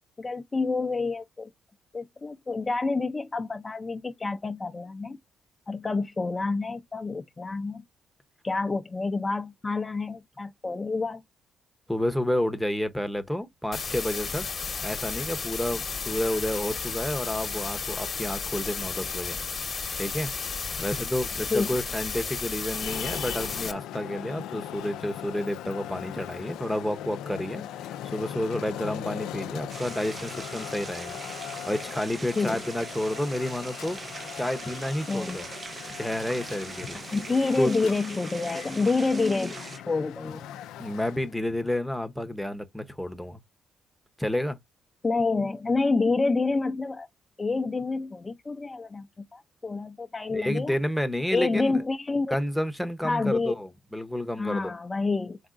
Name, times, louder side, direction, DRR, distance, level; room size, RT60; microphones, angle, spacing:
voice 1, 0.2-1.5 1.9-5.2 5.7-7.8 8.4-11.2 21.5-21.7 32.4-32.6 35.1-35.4 36.9-39.6 39.9-40.5 45.0-47.1 47.4-50.8 51.3-52.4 53.0-53.5 54.4-55.4, left 3 dB, 25° left, 0.5 m, -28 dB
voice 2, 11.9-14.5 14.8-19.4 20.0-20.3 20.8-27.6 28.0-31.2 31.5-34.0 34.3-35.5 35.9-37.0 37.6-37.9 40.8-43.4 44.2-44.6 50.3-51.8 52.3-54.7, left 1 dB, ahead, 0.8 m, -30 dB
sound 1, 13.7-23.7, left 5 dB, 40° left, 1.0 m, -33 dB
Traffic noise roadway noise, 22.7-41.4, left 11 dB, 90° left, 0.4 m, -40 dB
sound 2, 29.7-39.8, right 4 dB, 35° right, 0.4 m, -41 dB
4.7 x 3.5 x 2.5 m
cardioid pair, 90°, 0 cm